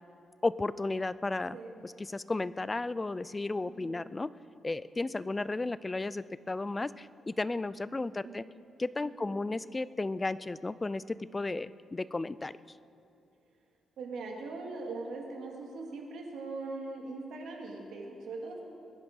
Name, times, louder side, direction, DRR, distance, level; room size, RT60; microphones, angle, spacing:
voice 1, 0.4-1.6 1.8-4.3 4.6-8.4 8.8-12.5, left 2 dB, 20° left, 17 dB, 0.4 m, -34 dB
voice 2, 3.6-4.0 8.2-8.4 9.2-9.3 14.0-18.6, right 3 dB, 75° right, 0 dB, 2.9 m, -41 dB
22.5 x 10.5 x 5.4 m, 2.7 s
cardioid pair, 115°, 0 cm